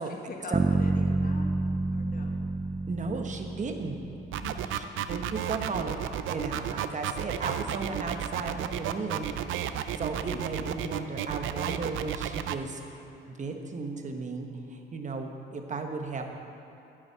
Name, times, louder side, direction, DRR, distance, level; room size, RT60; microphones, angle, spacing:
voice 1, 0.0-1.5 1.9-2.4 4.3-4.7, left 3 dB, 45° left, 1 dB, 1.5 m, -43 dB
Bass guitar, 0.5-4.6, right 3 dB, 15° right, 0.4 m, -29 dB
voice 2, 2.9-4.0 4.7-6.0 6.3-9.3 10.0-12.8 13.3-16.2, right 3 dB, 40° right, 4 dB, 1.1 m, -35 dB
sound 1, 4.3-12.6, right 11 dB, 80° right, 0.5 m, -32 dB
9.0 x 6.3 x 8.4 m, 2.8 s
cardioid pair, 90°, 20 cm